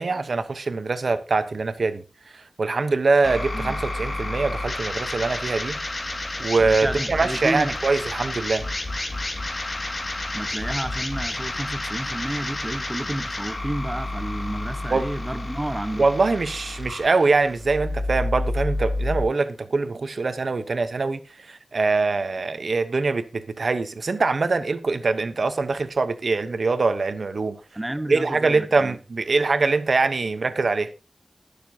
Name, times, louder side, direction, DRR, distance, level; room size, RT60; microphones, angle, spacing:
voice 1, 0.0-2.0 2.3-5.8 6.4-8.6 14.9-15.1 16.0-27.5 28.1-30.9, right 3 dB, 80° right, 1.0 m, -23 dB
sound 1, 3.2-19.2, left 2 dB, 45° left, 2.2 m, -30 dB
voice 2, 6.6-7.7 10.3-16.0 27.7-29.0, right 1 dB, 20° right, 1.2 m, -31 dB
20.0 x 6.8 x 2.8 m
wide cardioid pair, 50°, 0 cm